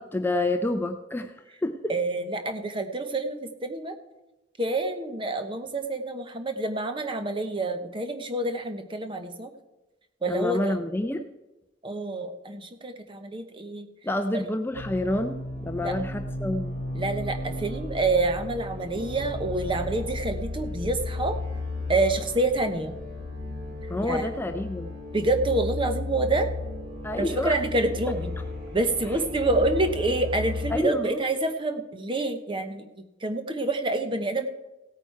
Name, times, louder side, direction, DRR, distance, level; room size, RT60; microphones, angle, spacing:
voice 1, 0.0-1.4 1.6-1.9 10.3-11.2 14.0-16.8 23.9-24.9 27.0-27.6 30.7-31.2, left 1 dB, 10° left, 6 dB, 0.5 m, -28 dB
voice 2, 1.9-3.9 4.6-9.5 10.2-10.7 11.8-13.9 15.8-16.0 16.9-21.3 21.9-22.9 24.0-24.3 25.1-26.5 27.2-28.3 28.7-32.9 33.2-34.5, right 2 dB, 25° right, 7 dB, 0.9 m, -27 dB
sound 1, 14.7-30.8, left 2 dB, 60° right, 3.6 m, -34 dB
16.5 x 9.0 x 4.6 m, 1.0 s
head